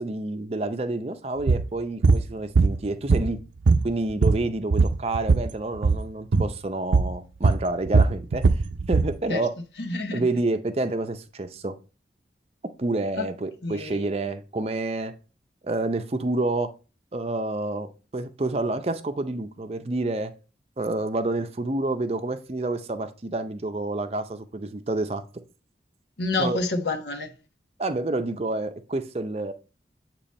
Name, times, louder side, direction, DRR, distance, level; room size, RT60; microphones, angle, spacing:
voice 1, 0.0-3.4 3.8-8.4 8.9-9.5 10.1-11.7 12.8-15.1 15.6-16.7 17.1-20.3 20.8-25.2 26.4-26.6 27.8-29.5, right 2 dB, 35° right, 0.5 m, -28 dB
sound 1, 1.5-1.7 2.0-2.2 2.6-3.4 3.7-5.5 5.8-6.0 6.3-6.5 6.9-7.1 7.4-9.1, right 4 dB, 85° right, 0.5 m, -19 dB
voice 2, 9.8-10.2 13.2-13.3 13.6-14.0 26.2-27.3, left 3 dB, 80° left, 1.1 m, -28 dB
8.6 x 3.0 x 4.2 m
head